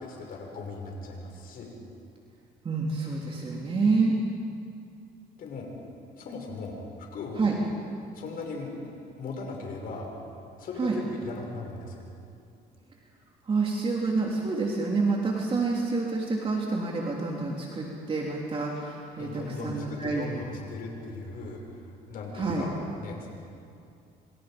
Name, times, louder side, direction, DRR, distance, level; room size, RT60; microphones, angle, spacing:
voice 1, 0.0-1.7 5.4-5.7 6.2-7.4 8.1-8.7 9.2-10.1 10.6-12.1 19.2-23.3, left 3 dB, 60° left, 0 dB, 6.4 m, -38 dB
voice 2, 2.6-4.1 7.4-7.6 10.8-11.0 13.5-20.2 22.3-22.6, right 3 dB, 35° right, -2 dB, 3.3 m, -28 dB
27.5 x 26.5 x 5.3 m, 2.5 s
cardioid pair, 110°, 17 cm